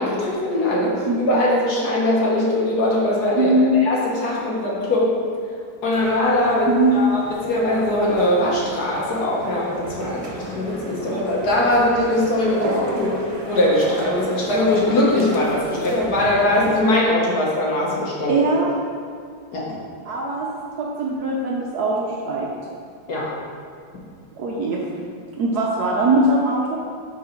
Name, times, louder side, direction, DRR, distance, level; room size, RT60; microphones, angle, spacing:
voice 1, 0.0-3.5 3.8-5.1 5.8-13.1 13.5-18.3 19.5-19.8 23.1-23.3, left 1 dB, 55° left, -4 dB, 1.5 m, -21 dB
voice 2, 1.0-1.4 3.3-3.8 6.7-7.0 12.6-12.7 18.3-18.7 20.1-22.5 24.4-24.8 25.4-26.8, right 2 dB, 65° right, -2 dB, 1.1 m, -21 dB
sound 1, 5.9-16.8, right 1 dB, 40° right, 0.4 m, -34 dB
5.9 x 3.9 x 5.8 m, 2.2 s
omnidirectional pair, 2.2 m